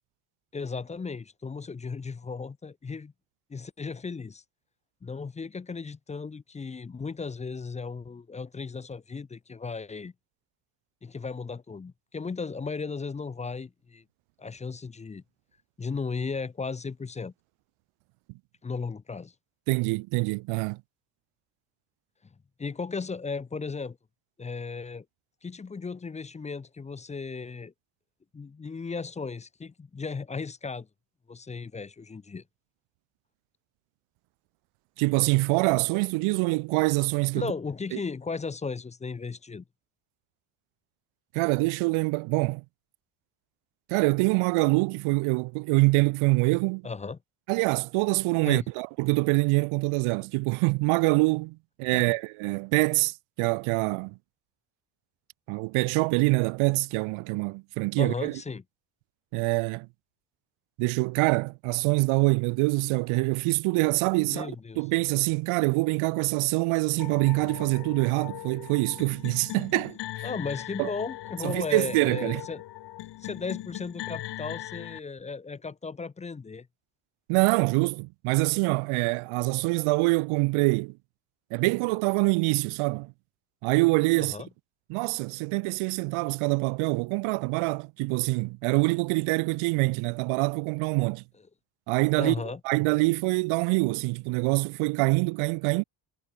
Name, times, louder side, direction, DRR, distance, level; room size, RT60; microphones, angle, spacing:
voice 1, 0.5-3.1 3.5-4.4 5.0-10.1 11.0-14.0 14.4-15.2 15.8-17.3 18.6-19.3 22.6-24.0 24.4-25.0 25.4-27.7 28.3-30.9 31.3-32.4 37.3-39.6 46.8-47.2 48.5-48.6 51.9-52.1 58.0-58.6 64.3-64.8 70.2-72.6 73.2-76.7 84.2-84.5 92.2-92.6, left 4 dB, 15° left, 0.7 m, -35 dB
voice 2, 19.7-20.8 35.0-37.5 37.9-38.0 41.3-42.6 43.9-46.9 47.5-54.1 55.5-58.3 59.3-59.9 60.8-70.0 70.8-70.9 71.4-72.4 77.3-80.9 81.5-83.1 83.6-84.4 84.9-91.2 91.9-92.4 92.6-95.8, right 26 dB, 80° right, 0.5 m, -25 dB
sound 1, 67.0-75.0, left 15 dB, 55° left, 2.0 m, -40 dB
cardioid pair, 175°, 49 cm